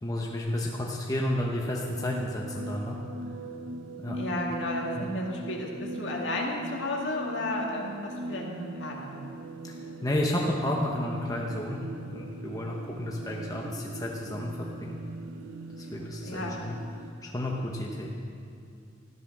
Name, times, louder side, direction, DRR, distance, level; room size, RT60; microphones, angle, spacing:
voice 1, 0.0-3.0 4.0-4.2 5.0-5.1 9.6-11.8 12.1-15.0 15.8-16.8 17.2-18.1, left 1 dB, 15° left, -2 dB, 0.9 m, -32 dB
sound 1, 1.6-17.1, right 2 dB, 85° right, 0.8 m, -40 dB
voice 2, 4.1-9.3 16.2-16.7, left 1 dB, 60° left, -1 dB, 2.1 m, -33 dB
14.0 x 11.0 x 6.1 m, 2.4 s
head